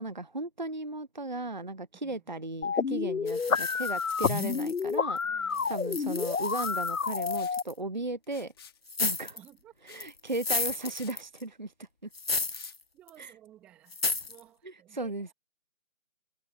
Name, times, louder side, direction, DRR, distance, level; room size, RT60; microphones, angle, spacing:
voice 1, 0.0-5.2 5.7-8.5 9.0-9.4 9.8-11.9 13.2-13.3 14.6-15.3, right 2 dB, 35° right, 0.9 m, -36 dB
voice 2, 2.0-2.4 5.2-5.9 9.3-9.7 12.9-15.3, right 12 dB, 5° right, 2.4 m, -56 dB
sound 1, 2.6-7.6, left 5 dB, 85° left, 0.7 m, -29 dB
sound 2, 3.3-5.2 5.5-7.7 8.9-9.5 10.0-11.4 12.1-12.8 13.1-13.2 13.9-14.4, left 3 dB, 50° left, 0.7 m, -34 dB
Liquid, 7.3-7.6 8.2-8.8 9.9-10.1 10.5-10.6 10.9-11.2 12.5-12.8, left 7 dB, 20° left, 4.1 m, -51 dB
figure-of-eight pair, 160°, 40 cm